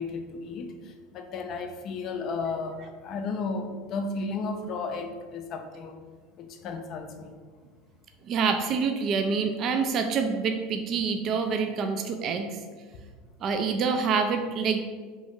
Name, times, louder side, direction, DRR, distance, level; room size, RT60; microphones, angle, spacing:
voice 1, 0.0-6.0 6.4-7.3, left 4 dB, 50° left, 5 dB, 0.4 m, -34 dB
voice 2, 8.3-12.6 13.4-14.8, right 5 dB, 45° right, 6 dB, 0.3 m, -26 dB
3.0 x 2.6 x 3.5 m, 1.5 s
supercardioid pair, 100°, 0 cm